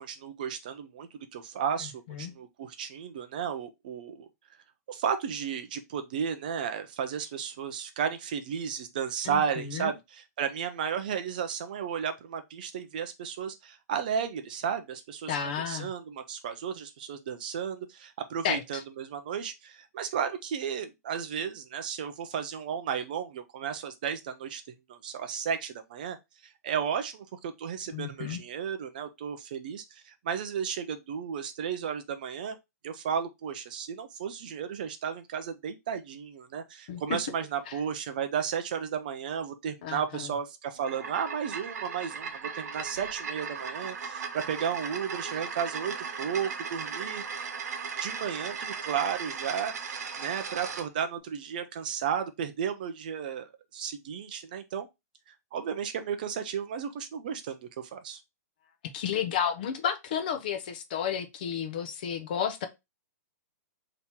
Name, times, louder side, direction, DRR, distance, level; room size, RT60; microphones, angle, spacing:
voice 1, 0.0-4.3 4.9-24.6 24.9-26.2 26.6-32.6 32.8-47.2 48.0-54.9 55.3-58.2, right 7 dB, 30° right, 0.4 m, -34 dB
voice 2, 9.2-9.9 15.3-15.9 18.4-18.8 27.9-28.4 36.9-37.2 37.7-37.8 39.8-40.3 58.9-62.7, left 8 dB, 30° left, 0.6 m, -32 dB
sound 1, 40.8-50.9, right 6 dB, 75° right, 0.9 m, -37 dB
3.6 x 2.9 x 4.2 m
hypercardioid pair, 180°, 9 cm